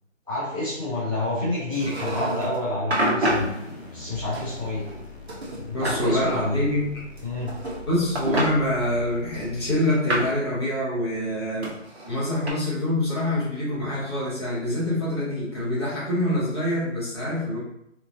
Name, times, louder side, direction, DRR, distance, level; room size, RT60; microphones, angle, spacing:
voice 1, 0.3-3.5 3.9-4.8 5.6-6.6 7.2-7.5, left 2 dB, 20° right, -11 dB, 0.6 m, -28 dB
sound 1, 1.7-2.6 2.9-3.5 4.3-5.0 5.3-6.0 7.2-7.8 8.1-8.5 9.3-10.4 11.6-12.5, right 1 dB, 55° right, 1.0 m, -27 dB
sound 2, 3.2-10.0, equal, 55° left, 0.9 m, -42 dB
voice 2, 5.7-7.0 7.9-11.7 12.1-17.6, left 1 dB, 20° left, -9 dB, 0.9 m, -25 dB
3.7 x 3.0 x 2.6 m, 0.76 s
figure-of-eight pair, 160°, 39 cm